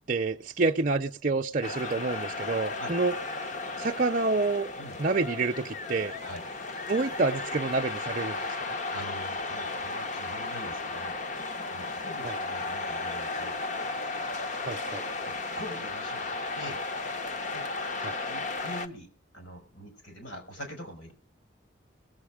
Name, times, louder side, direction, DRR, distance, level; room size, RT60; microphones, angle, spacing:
voice 1, 0.1-3.1 3.8-4.7 5.0-6.1 6.9-8.7 12.2-12.4 14.7-15.0 18.0-18.1, right 3 dB, 40° right, 0.6 m, -28 dB
sound 1, 1.6-18.9, left 3 dB, 35° left, 0.8 m, -34 dB
voice 2, 8.9-11.2 11.7-13.6 15.2-16.8 17.5-17.6 18.0-19.1 19.3-21.1, equal, 70° left, 5.9 m, -44 dB
21.0 x 7.8 x 5.0 m
head